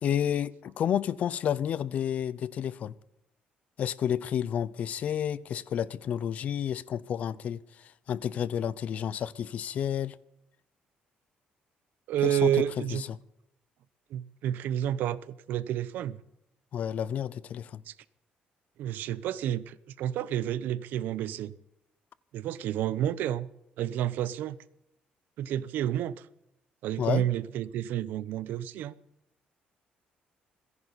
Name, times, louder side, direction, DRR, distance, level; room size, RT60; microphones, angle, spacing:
voice 1, 0.0-2.9 3.8-10.2 12.2-12.5 12.9-13.2 16.7-17.8 27.0-27.2, left 9 dB, 50° left, 0.6 m, -30 dB
voice 2, 12.1-13.0 14.1-16.2 17.9-18.0 18.8-21.5 22.3-23.5 23.8-24.6 25.4-26.3 26.8-28.9, right 11 dB, 80° right, 0.8 m, -30 dB
28.5 x 11.0 x 4.1 m
cardioid pair, 165°, 3 cm